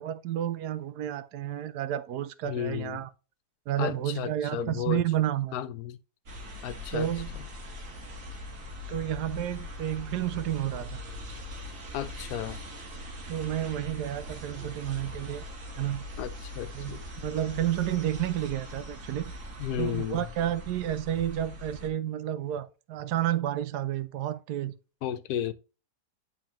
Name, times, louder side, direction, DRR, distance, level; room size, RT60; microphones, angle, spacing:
voice 1, 0.0-3.1 3.7-5.5 6.9-7.3 8.9-11.0 13.3-15.4 15.8-16.1 16.7-19.3 19.8-24.8, right 12 dB, 85° right, 1.2 m, -31 dB
voice 2, 2.4-3.0 3.8-5.0 5.5-6.0 6.6-7.1 7.3-7.4 11.9-12.6 16.2-17.0 19.6-20.2 25.0-25.5, left 10 dB, 75° left, 1.1 m, -33 dB
sound 1, 6.3-21.9, left 1 dB, 55° right, 1.8 m, -41 dB
8.9 x 3.8 x 3.0 m
omnidirectional pair, 1.7 m